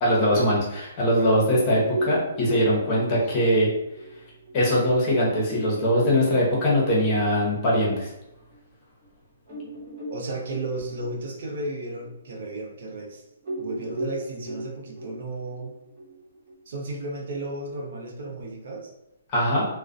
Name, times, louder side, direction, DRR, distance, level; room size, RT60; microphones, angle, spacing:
voice 1, 0.0-3.7 4.5-8.1 19.3-19.6, equal, 30° left, -4 dB, 0.8 m, -21 dB
sound 1, 1.5-8.6 9.0-9.1 9.5-13.1 13.4-16.5, right 1 dB, 40° right, 1.1 m, -37 dB
voice 2, 10.1-13.2 13.6-15.7 16.7-18.9, right 2 dB, 65° right, -1 dB, 0.6 m, -34 dB
2.3 x 2.1 x 2.5 m, 0.88 s
hypercardioid pair, 150°, 0 cm